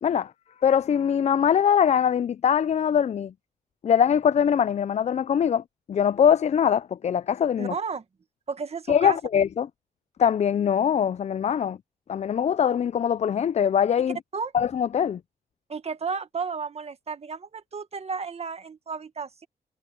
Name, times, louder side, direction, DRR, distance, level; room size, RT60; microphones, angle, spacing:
voice 1, 0.6-3.3 3.8-5.6 5.9-7.7 8.9-9.7 10.2-11.8 12.1-14.2 14.5-15.2, left 8 dB, 50° left, 0.4 m, -22 dB
voice 2, 7.6-8.0 8.5-9.2 14.3-14.5 15.7-19.5, right 5 dB, 45° right, 1.6 m, -33 dB
cardioid pair, 80°, 15 cm